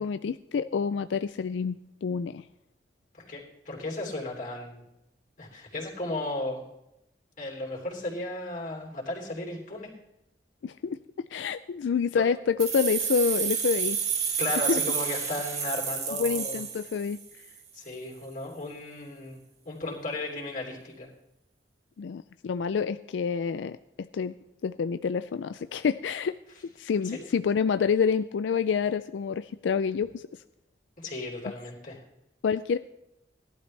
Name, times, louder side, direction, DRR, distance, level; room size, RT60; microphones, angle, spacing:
voice 1, 0.0-2.4 10.6-14.0 14.7-14.8 16.2-17.2 22.0-24.3 24.6-26.4 26.8-30.2 32.4-32.8, left 6 dB, 90° left, 12 dB, 0.4 m, -28 dB
voice 2, 3.1-4.8 5.4-6.6 7.4-10.0 12.2-12.3 14.4-16.6 17.7-19.4 19.6-21.1 27.0-27.2 31.0-32.0, left 2 dB, 45° left, -1 dB, 3.3 m, -35 dB
sound 1, 12.6-17.4, right 7 dB, 40° right, 1.6 m, -30 dB
17.5 x 12.0 x 3.3 m, 0.90 s
head